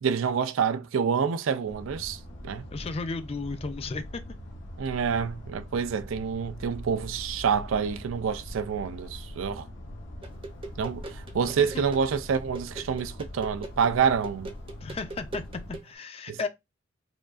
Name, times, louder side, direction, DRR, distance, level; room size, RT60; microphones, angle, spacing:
voice 1, 0.0-2.7 4.8-9.7 10.8-14.5 16.3-16.5, right 6 dB, 80° right, 0.4 m, -27 dB
sound 1, 1.6-15.8, left 1 dB, 65° left, 0.8 m, -42 dB
voice 2, 2.7-4.2 11.6-11.8 14.8-16.5, left 4 dB, 30° left, 0.4 m, -34 dB
sound 2, 10.2-15.9, right 2 dB, 25° right, 0.6 m, -43 dB
4.9 x 2.3 x 2.4 m
head